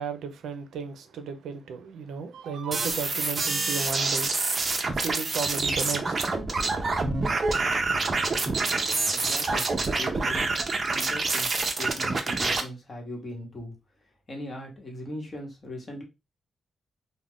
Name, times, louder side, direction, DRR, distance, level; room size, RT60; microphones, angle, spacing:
voice 1, 0.0-4.3 4.9-6.2, right 5 dB, 90° right, 0.4 m, -34 dB
sound 1, 2.7-12.6, right 3 dB, 35° right, 0.5 m, -27 dB
voice 2, 9.1-9.7 10.0-13.7 14.3-16.0, left 1 dB, 30° left, 1.0 m, -39 dB
2.4 x 2.1 x 3.5 m
cardioid pair, 120°, 0 cm